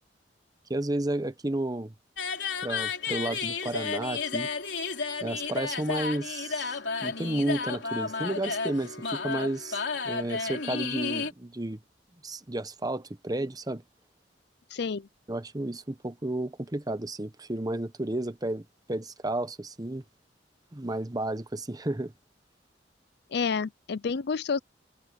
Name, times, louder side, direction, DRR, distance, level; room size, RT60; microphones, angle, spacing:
voice 1, 0.7-1.9 2.6-4.5 5.2-11.8 12.2-13.8 15.3-20.0 20.7-22.1, right 1 dB, 20° right, 1.0 m, -32 dB
sound 1, 2.2-11.3, left 5 dB, 85° left, 3.4 m, -32 dB
voice 2, 14.7-15.1 23.3-24.6, left 5 dB, 65° left, 0.5 m, -29 dB
head